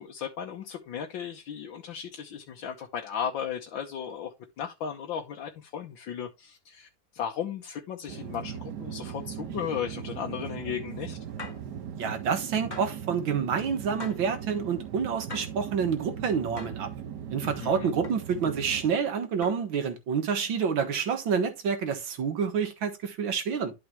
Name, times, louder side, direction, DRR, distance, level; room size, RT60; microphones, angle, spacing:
voice 1, 0.0-11.2 17.4-17.9, left 8 dB, 80° left, 1.7 m, -36 dB
sound 1, 8.1-18.9, right 9 dB, 60° right, 1.4 m, -39 dB
sound 2, 11.4-11.7 12.7-13.0 14.0-14.3 15.3-15.6 16.6-16.9 18.0-18.3 19.4-19.8 20.8-21.1, left 3 dB, 25° left, 1.3 m, -42 dB
voice 2, 12.0-16.9 17.3-23.7, right 6 dB, 80° right, 2.2 m, -28 dB
11.5 x 4.9 x 3.2 m
omnidirectional pair, 2.1 m